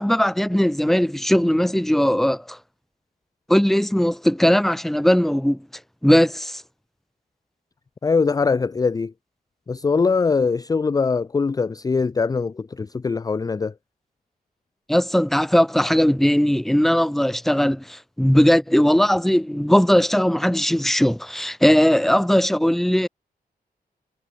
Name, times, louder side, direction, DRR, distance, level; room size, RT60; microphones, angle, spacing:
voice 1, 0.0-2.6 3.5-5.6 6.0-6.6 14.9-23.1, equal, ahead, 0.8 m, -19 dB
voice 2, 8.0-9.1 9.7-13.7, left 4 dB, 25° left, 0.4 m, -22 dB
wide cardioid pair, 145°, 16 cm